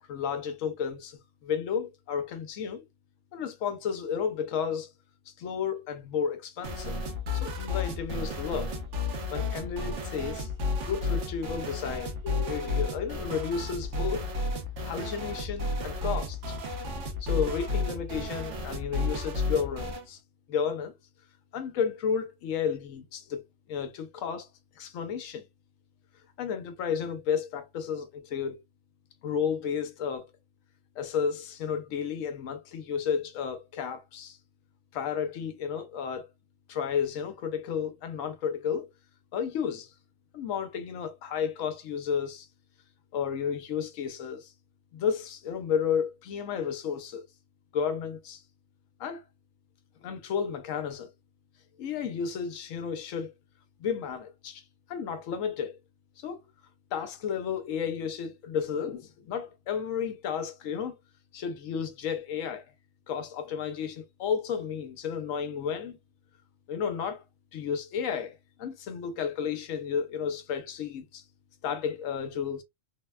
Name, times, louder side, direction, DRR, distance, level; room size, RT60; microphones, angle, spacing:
voice 1, 0.1-2.8 3.3-4.9 5.3-6.9 7.3-8.7 9.3-10.5 10.8-14.3 14.8-16.6 17.2-20.2 20.5-20.9 21.5-23.4 23.7-24.5 24.8-25.4 26.4-28.6 29.2-30.3 31.0-34.4 34.9-36.3 36.7-38.9 39.3-39.9 40.3-42.5 43.1-44.5 44.9-47.2 47.7-48.4 49.0-49.2 50.0-51.1 51.8-53.3 53.8-55.8 56.2-56.4 56.9-61.0 61.3-62.7 63.1-66.0 66.7-67.2 67.5-71.2 71.6-72.6, left 7 dB, 75° left, 1.0 m, -32 dB
sound 1, 6.6-20.1, left 2 dB, 65° right, 1.1 m, -32 dB
3.4 x 2.1 x 2.2 m
omnidirectional pair, 1.4 m